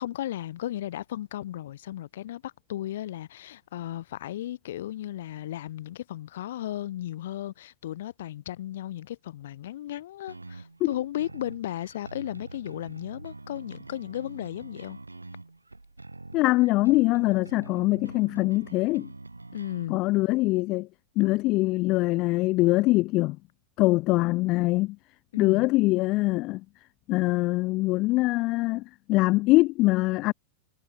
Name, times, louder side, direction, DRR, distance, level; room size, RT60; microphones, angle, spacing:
voice 1, 0.0-15.0 19.5-20.0 25.3-25.7, left 13 dB, 60° left, 4.7 m, -35 dB
sound 1, 10.3-19.9, right 2 dB, 80° right, 2.2 m, -45 dB
voice 2, 16.3-19.1 19.9-20.9 21.2-23.4 23.8-25.0 25.4-26.6 27.1-28.8 29.1-30.3, left 20 dB, 40° left, 1.1 m, -23 dB
figure-of-eight pair, 90°, 0 cm